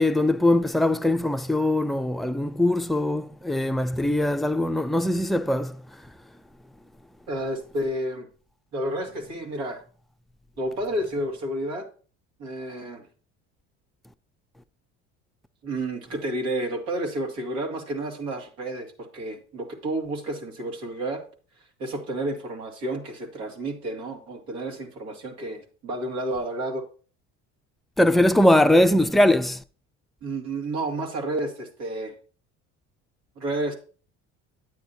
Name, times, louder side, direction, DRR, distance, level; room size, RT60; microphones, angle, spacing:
voice 1, 0.0-5.8 28.0-29.6, left 1 dB, ahead, 0.4 m, -21 dB
voice 2, 7.3-8.3 8.7-9.8 10.6-11.9 12.4-13.0 15.6-21.2 21.8-26.8 30.2-32.1 33.4-33.7, right 1 dB, 80° right, 2.2 m, -30 dB
9.3 x 8.7 x 2.8 m
supercardioid pair, 80°, 34 cm